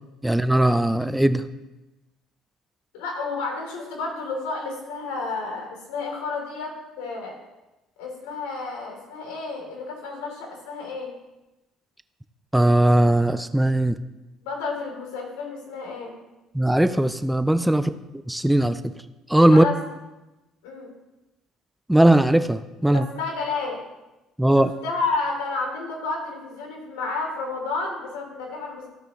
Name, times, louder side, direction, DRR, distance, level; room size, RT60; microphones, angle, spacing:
voice 1, 0.2-1.4 12.5-13.9 16.5-17.9 18.3-18.8 19.3-19.7 21.9-23.1 24.4-24.7, right 1 dB, 5° right, 11 dB, 0.4 m, -18 dB
voice 2, 2.9-7.4 8.0-11.1 14.4-16.1 17.8-18.0 19.5-19.9 20.6-20.9 22.9-23.8 24.5-28.9, left 3 dB, 85° left, 0 dB, 3.0 m, -31 dB
15.0 x 5.5 x 3.1 m, 1.0 s
supercardioid pair, 75°, 0 cm